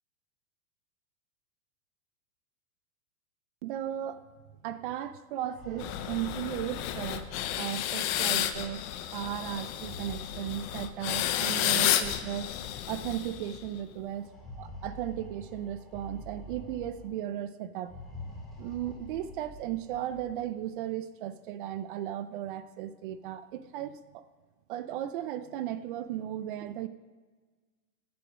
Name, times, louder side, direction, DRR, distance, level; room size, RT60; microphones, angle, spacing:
voice 1, 3.6-4.2 4.6-7.3 7.6-8.8 9.1-12.5 12.9-14.3 14.6-17.9 18.6-24.2 24.7-26.9, right 11 dB, 35° right, 14 dB, 0.4 m, -36 dB
sound 1, 5.3-8.2 9.6-11.3 12.3-12.4 12.7-12.8 14.1-17.2 17.8-20.4, left 1 dB, ahead, 2.4 m, -47 dB
sound 2, 5.8-13.8, left 12 dB, 25° left, 0.5 m, -31 dB
15.0 x 6.9 x 6.1 m, 1.4 s
supercardioid pair, 145°, 47 cm